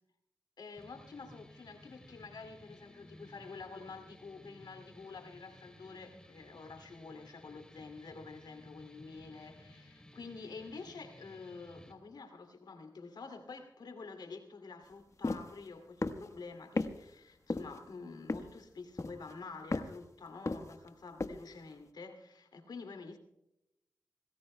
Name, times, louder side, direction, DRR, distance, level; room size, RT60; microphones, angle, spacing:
voice 1, 0.6-23.2, left 4 dB, 80° left, 2.6 m, -48 dB
sound 1, 0.8-11.9, left 1 dB, 10° left, 3.3 m, -57 dB
sound 2, 15.2-15.5 16.0-16.3 16.8-16.9 17.5-17.8 18.3-18.6 19.0-19.3 19.7-20.0 20.5-20.9 21.2-21.4, left 3 dB, 45° left, 1.2 m, -34 dB
27.0 x 19.0 x 2.2 m
cardioid pair, 50°, 7 cm